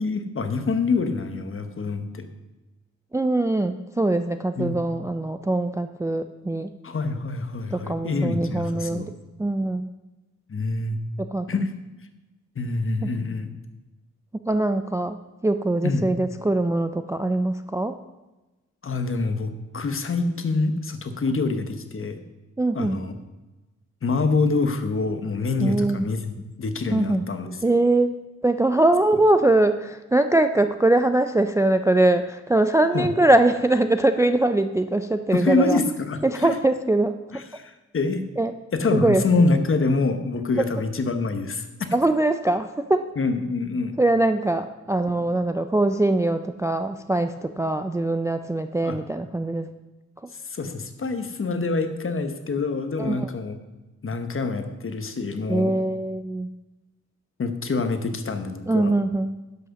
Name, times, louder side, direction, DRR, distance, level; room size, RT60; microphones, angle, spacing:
voice 1, 0.0-2.3 4.6-4.8 6.8-9.1 10.5-11.0 11.5-11.7 12.6-13.5 15.8-16.0 18.8-22.2 22.7-23.1 24.0-27.7 32.9-33.1 35.3-36.6 37.3-38.2 38.7-41.7 43.2-43.9 48.8-49.0 50.3-53.6 54.0-55.7 57.4-58.9, left 3 dB, 45° left, 8 dB, 1.0 m, -26 dB
voice 2, 3.1-6.7 7.7-9.1 9.4-9.9 11.2-11.5 13.0-13.1 14.5-18.0 22.6-23.0 25.6-26.1 26.9-27.3 27.6-28.2 28.4-35.8 36.2-37.2 38.4-38.5 38.9-39.4 41.9-43.0 44.0-49.7 53.0-53.3 55.5-56.5 58.7-59.4, right 2 dB, 10° right, 9 dB, 0.3 m, -22 dB
10.5 x 6.3 x 6.9 m, 1.1 s
wide cardioid pair, 160°, 30 cm